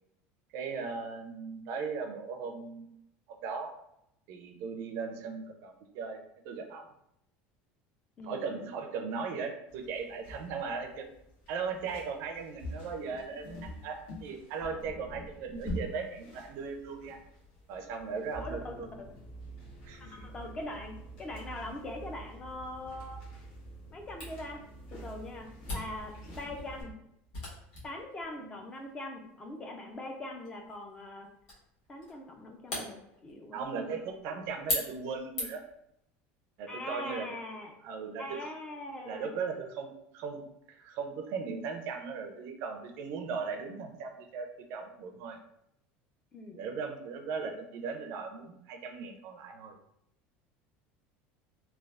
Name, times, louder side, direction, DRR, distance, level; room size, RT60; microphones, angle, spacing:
voice 1, 0.5-2.9 3.3-3.7 4.3-6.2 6.4-6.9 8.2-11.1 11.5-17.2 17.7-18.9 19.8-20.3 28.4-28.6 33.5-35.6 36.6-37.4 37.8-38.5 39.0-45.4 46.5-49.8, right 5 dB, 55° right, 4 dB, 0.4 m, -38 dB
voice 2, 8.2-8.6 18.4-19.1 20.0-23.2 23.9-24.6 24.9-26.9 27.8-31.3 31.9-34.0 36.7-37.7 38.2-39.3 46.3-46.6, left 1 dB, 20° left, 3 dB, 0.3 m, -42 dB
sound 1, 9.7-26.8, left 1 dB, 75° left, 1.2 m, -48 dB
sound 2, 18.3-26.9, right 3 dB, 40° left, 0.9 m, -48 dB
Camera, 24.2-35.8, left 2 dB, 60° left, 1.2 m, -42 dB
3.2 x 2.2 x 2.4 m, 0.79 s
cardioid pair, 160°, 5 cm